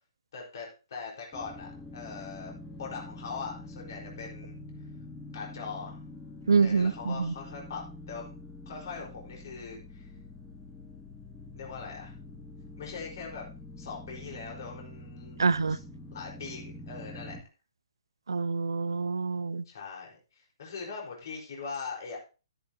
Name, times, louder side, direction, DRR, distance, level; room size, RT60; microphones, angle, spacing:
voice 1, 0.3-4.5 4.8-4.9 5.3-6.0 6.6-8.3 8.7-10.1 11.5-12.1 12.8-13.4 13.8-15.4 15.7-15.8 16.1-17.4 19.6-22.2, left 5 dB, 50° left, 4.4 m, -41 dB
sound 1, 1.3-17.4, left 1 dB, 5° left, 1.4 m, -46 dB
voice 2, 6.5-7.3 15.4-15.8 18.3-19.6, right 4 dB, 65° right, 0.5 m, -26 dB
12.5 x 10.0 x 2.9 m
figure-of-eight pair, 125°, 2 cm